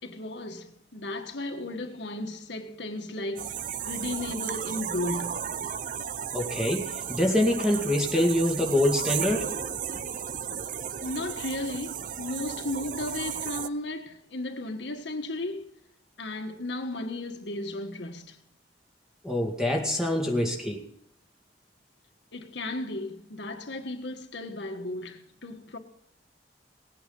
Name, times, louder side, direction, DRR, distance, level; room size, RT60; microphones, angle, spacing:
voice 1, 0.0-5.6 11.0-15.7 16.2-18.4 22.3-25.8, left 2 dB, 75° left, 1.6 m, -35 dB
sound 1, 3.4-13.7, right 8 dB, 45° right, 0.5 m, -34 dB
voice 2, 6.3-9.5 19.2-20.8, left 1 dB, 5° right, 2.1 m, -25 dB
18.5 x 9.3 x 5.5 m
head